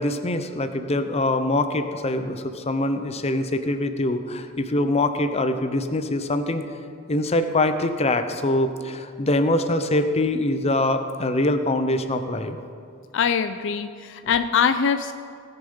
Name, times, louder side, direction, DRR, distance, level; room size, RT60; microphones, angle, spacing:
voice 1, 0.0-6.7 7.1-12.6, left 1 dB, 30° left, 9 dB, 0.7 m, -24 dB
voice 2, 13.1-15.1, left 6 dB, 65° left, 10 dB, 0.4 m, -23 dB
18.0 x 6.9 x 5.5 m, 2.3 s
head